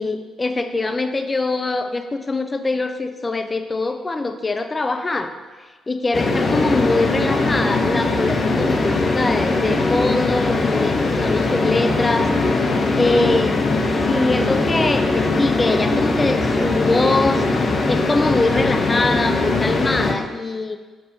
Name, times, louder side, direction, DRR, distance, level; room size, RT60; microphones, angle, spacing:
voice 1, 0.0-5.3 5.9-12.3 12.5-13.6 14.0-20.8, left 3 dB, 30° left, 7 dB, 0.7 m, -23 dB
sound 1, 6.1-20.1, left 2 dB, 45° left, 0.9 m, -20 dB
7.6 x 4.2 x 5.4 m, 1.3 s
hypercardioid pair, 50°, 0 cm